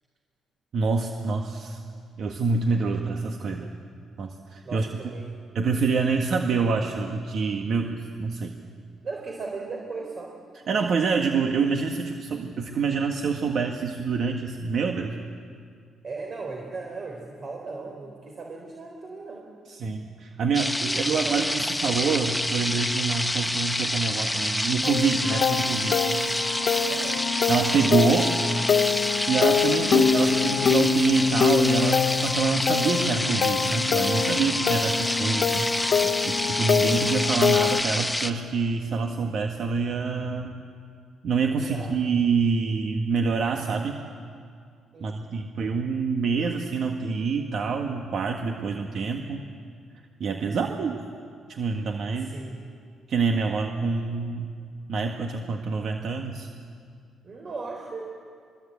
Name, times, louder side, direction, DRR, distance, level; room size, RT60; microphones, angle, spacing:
voice 1, 0.7-1.8 2.2-3.7 4.2-4.9 5.5-8.5 10.7-15.1 19.7-26.0 27.5-28.4 29.3-35.9 36.2-40.5 41.2-44.0 45.0-49.4 50.2-51.0 51.5-52.3 53.1-54.5 54.9-56.5, right 5 dB, 60° right, 3 dB, 1.7 m, -26 dB
voice 2, 4.6-5.4 9.0-10.3 16.0-19.5 20.9-21.5 26.9-27.2 41.4-41.9 44.9-45.2 50.5-50.8 52.2-52.6 57.2-58.0, right 3 dB, 45° right, 0 dB, 4.0 m, -37 dB
sound 1, 20.5-38.3, left 1 dB, 5° left, 1.3 m, -28 dB
sound 2, 24.8-37.8, left 6 dB, 60° left, 0.9 m, -25 dB
23.5 x 21.5 x 8.6 m, 2.2 s
cardioid pair, 90°, 0 cm